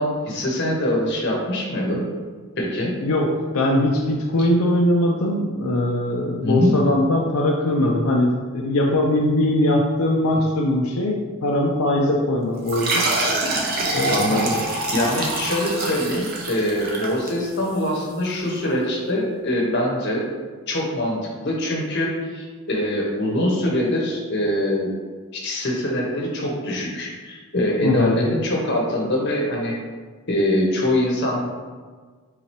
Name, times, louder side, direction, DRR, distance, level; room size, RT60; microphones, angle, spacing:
voice 1, 0.0-2.0 2.6-2.9 4.4-4.5 6.4-6.8 14.1-20.2 20.7-24.9 25.3-29.7 30.3-31.4, left 1 dB, 50° left, -2 dB, 1.0 m, -23 dB
voice 2, 3.5-13.1 13.9-14.4 27.8-28.2, left 1 dB, 85° left, -1 dB, 0.5 m, -21 dB
sound 1, 12.7-17.8, right 2 dB, 45° right, 0.6 m, -25 dB
3.8 x 2.8 x 4.5 m, 1.5 s
head